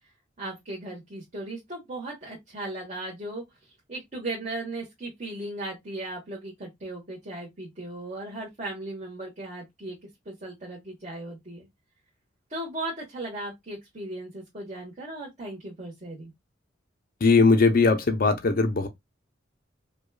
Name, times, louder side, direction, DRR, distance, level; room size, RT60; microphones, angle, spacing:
voice 1, 0.4-3.4 3.9-10.0 10.2-11.7 12.5-16.3, right 2 dB, 35° right, 1.3 m, -37 dB
voice 2, 17.2-18.9, left 4 dB, 45° left, 0.5 m, -20 dB
4.9 x 2.3 x 2.3 m
head